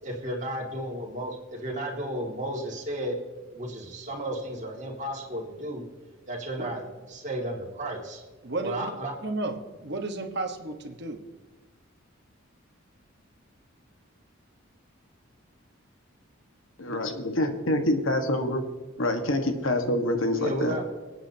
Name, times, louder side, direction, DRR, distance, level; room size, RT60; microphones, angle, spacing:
voice 1, 0.0-3.2 3.5-5.8 6.3-8.2 8.6-9.1 20.4-20.8, right 1 dB, 35° right, -2 dB, 2.5 m, -33 dB
voice 2, 8.4-8.9 9.2-11.2, right 2 dB, 55° right, 5 dB, 1.4 m, -33 dB
voice 3, 16.8-18.6 19.0-20.8, left 1 dB, 75° left, 5 dB, 1.6 m, -26 dB
26.5 x 8.9 x 2.9 m, 1.3 s
head